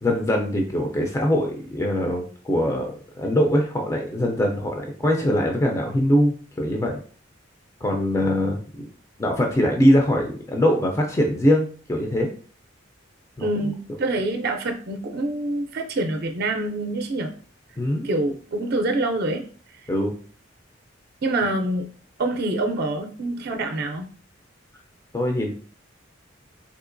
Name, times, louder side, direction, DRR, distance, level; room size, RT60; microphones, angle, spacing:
voice 1, 0.0-7.0 7.8-8.9 9.2-12.3 13.4-13.5 17.8-18.1 19.9-20.1 25.1-25.5, equal, 15° left, 1 dB, 0.3 m, -22 dB
voice 2, 13.4-17.3 18.0-19.4 19.7-19.9 21.2-21.9 22.2-24.1, right 2 dB, 50° right, 5 dB, 0.4 m, -26 dB
3.7 x 2.8 x 2.5 m, 0.44 s
head